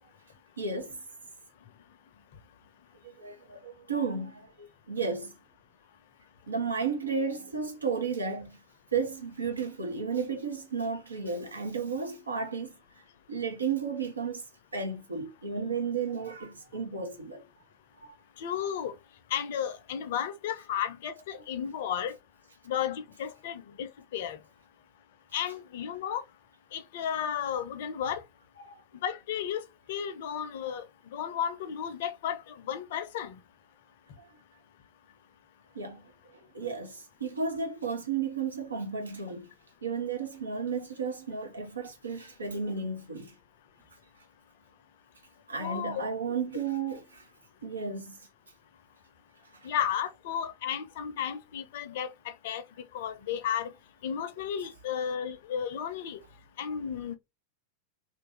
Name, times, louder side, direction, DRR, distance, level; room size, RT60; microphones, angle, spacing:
voice 1, 0.6-1.0 3.0-5.3 6.5-8.6 8.9-13.0 13.3-14.4 14.7-17.4 18.0-18.1 28.6-28.8 34.2-34.4 35.7-39.5 39.8-43.4 45.5-47.3 47.6-48.2 49.4-49.7, right 5 dB, 75° right, 1.0 m, -33 dB
voice 2, 18.4-18.9 19.3-22.1 22.7-24.4 25.3-26.2 26.7-28.2 29.0-29.6 29.9-30.8 31.1-32.4 32.7-33.4 45.6-46.1 49.6-52.1 52.4-52.6 52.9-53.7 54.0-56.2 56.6-57.2, left 9 dB, 55° left, 0.5 m, -33 dB
2.9 x 2.5 x 3.4 m
figure-of-eight pair, 90°, 0 cm